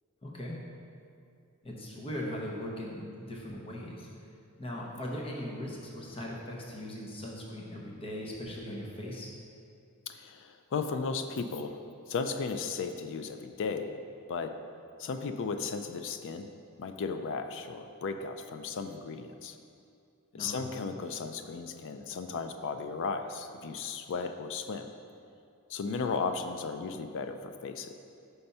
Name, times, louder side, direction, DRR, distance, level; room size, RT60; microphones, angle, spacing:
voice 1, 0.2-0.6 1.6-4.1 4.6-9.3 20.3-20.6, left 1 dB, 25° left, -3 dB, 0.8 m, -39 dB
voice 2, 10.1-11.8 12.1-14.0 14.3-14.6 15.0-16.5 16.8-19.6 20.3-24.9 25.7-27.9, left 5 dB, 55° left, 8 dB, 0.4 m, -35 dB
5.5 x 3.4 x 5.3 m, 2.4 s
head